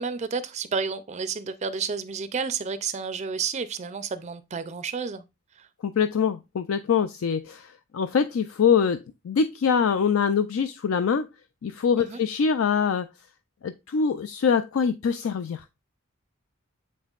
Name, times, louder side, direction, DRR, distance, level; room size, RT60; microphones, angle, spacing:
voice 1, 0.0-5.2 5.6-5.7 12.0-12.2, right 5 dB, 30° right, 0.4 m, -31 dB
voice 2, 5.8-11.3 11.6-13.1 13.6-15.6, left 6 dB, 70° left, 0.4 m, -24 dB
7.4 x 5.3 x 2.4 m
head